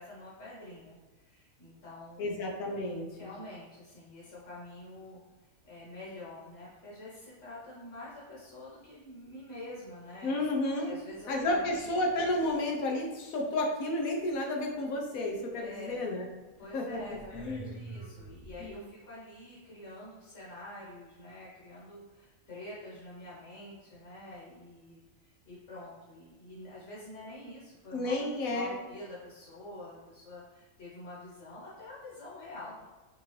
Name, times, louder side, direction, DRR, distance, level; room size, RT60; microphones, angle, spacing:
voice 1, 0.0-2.4 3.2-5.2 5.6-10.5 10.9-11.9 15.5-16.1 16.6-28.2 28.5-32.8, left 1 dB, 60° left, -8 dB, 1.6 m, -47 dB
voice 2, 2.2-3.3 10.2-11.0 11.3-16.3 16.7-17.8 18.6-18.9 27.9-28.7, left 1 dB, 75° left, 0 dB, 1.3 m, -32 dB
sound 1, 11.1-12.8 15.9-16.0 16.9-18.7, right 2 dB, 45° right, 1.3 m, -49 dB
5.4 x 2.6 x 3.1 m, 1.3 s
omnidirectional pair, 1.5 m